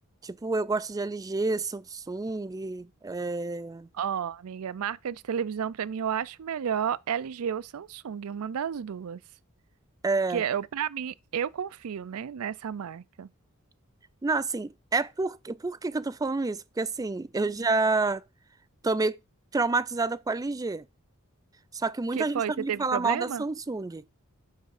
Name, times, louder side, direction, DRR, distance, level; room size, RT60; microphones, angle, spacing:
voice 1, 0.2-3.9 10.0-10.4 14.2-18.2 18.8-19.2 19.5-20.8 21.7-24.1, right 3 dB, 15° right, 0.4 m, -29 dB
voice 2, 3.9-9.2 10.3-13.3 22.2-23.4, right 8 dB, 80° right, 0.4 m, -32 dB
10.0 x 3.5 x 6.4 m
head